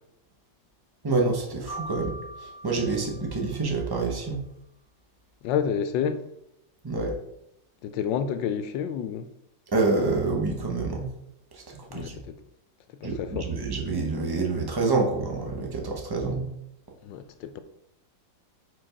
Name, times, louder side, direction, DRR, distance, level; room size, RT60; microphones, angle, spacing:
voice 1, 1.0-4.4 6.8-7.2 9.7-11.1 11.5-12.2 13.0-16.5, right 3 dB, 30° right, 0.4 m, -27 dB
Piano, 1.7-3.8, right 1 dB, 30° left, 1.5 m, -42 dB
voice 2, 5.4-6.2 7.8-9.3 11.9-12.3 13.0-13.7 17.0-17.6, left 8 dB, 85° left, 1.3 m, -29 dB
4.6 x 4.3 x 5.0 m
omnidirectional pair, 2.0 m